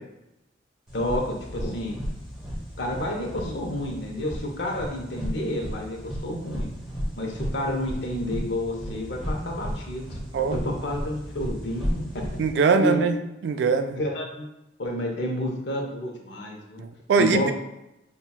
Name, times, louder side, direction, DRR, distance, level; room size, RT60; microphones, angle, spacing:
voice 1, 0.9-2.0 2.8-6.0 6.2-6.7 7.2-10.2 10.5-12.0 12.7-13.0 13.9-14.5 14.8-16.8 17.2-17.5, left 1 dB, 70° left, 1 dB, 0.7 m, -30 dB
sound 1, 0.9-12.5, equal, 5° right, 1.0 m, -34 dB
voice 2, 12.4-13.2 13.4-14.0 16.8-17.5, right 5 dB, 65° right, 7 dB, 0.3 m, -22 dB
5.5 x 2.3 x 2.3 m, 0.90 s
head